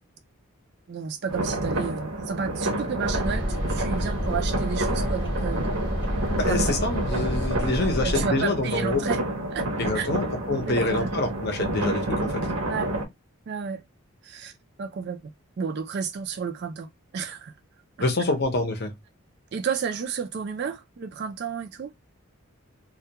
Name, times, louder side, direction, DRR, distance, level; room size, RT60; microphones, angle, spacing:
voice 1, 0.9-5.7 7.8-9.2 9.5-9.7 9.9-10.1 10.7-11.1 12.7-12.9 13.5-13.8 14.2-14.5 14.8-15.2 15.6-16.9 17.1-17.5 19.5-21.9, right 6 dB, 50° right, 0.3 m, -31 dB
sound 1, 1.3-13.0, right 1 dB, 70° right, 0.7 m, -29 dB
sound 2, 3.0-8.2, equal, 20° left, 0.8 m, -29 dB
voice 2, 6.3-9.0 9.8-12.4 18.0-18.9, left 2 dB, 45° left, 0.6 m, -26 dB
2.2 x 2.2 x 2.8 m
head